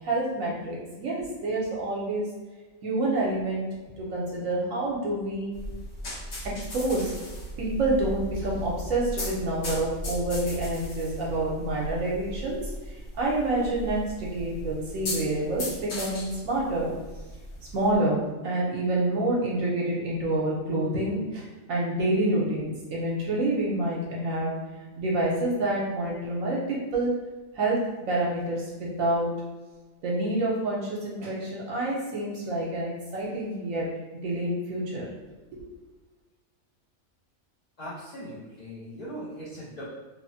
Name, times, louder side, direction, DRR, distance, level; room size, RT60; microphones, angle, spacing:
voice 1, 0.0-2.3 2.8-3.7 4.0-5.5 6.7-7.1 7.6-12.6 13.2-16.9 17.7-24.5 25.0-27.1 27.5-29.3 30.0-33.8 34.2-35.1 35.5-35.7, right 2 dB, 75° right, -4 dB, 1.0 m, -28 dB
sound 1, 5.5-17.9, equal, 90° left, 1.3 m, -37 dB
voice 2, 37.8-39.9, equal, 60° left, -8 dB, 0.4 m, -39 dB
3.0 x 2.0 x 2.6 m, 1.2 s
omnidirectional pair, 1.4 m